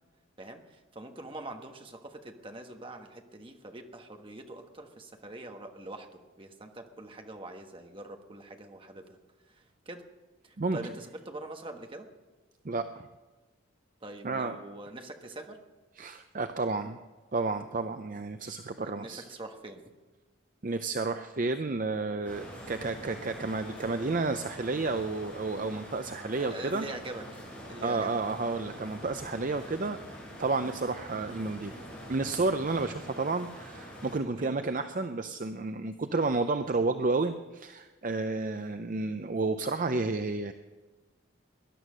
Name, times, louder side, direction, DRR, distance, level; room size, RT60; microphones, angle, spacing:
voice 1, 0.4-9.2 9.5-10.0 10.4-12.1 14.0-15.6 18.8-19.8 26.4-27.2 27.6-28.1 34.3-34.6, right 2 dB, 25° right, 4 dB, 1.3 m, -44 dB
voice 2, 12.6-13.1 14.2-14.6 16.0-17.0 17.3-19.2 20.6-26.9 27.8-30.0 30.4-31.8 32.1-40.5, right 3 dB, 40° right, 9 dB, 0.5 m, -31 dB
sound 1, 22.2-34.2, equal, 5° left, 5.4 m, -45 dB
20.0 x 11.0 x 6.2 m, 1.2 s
head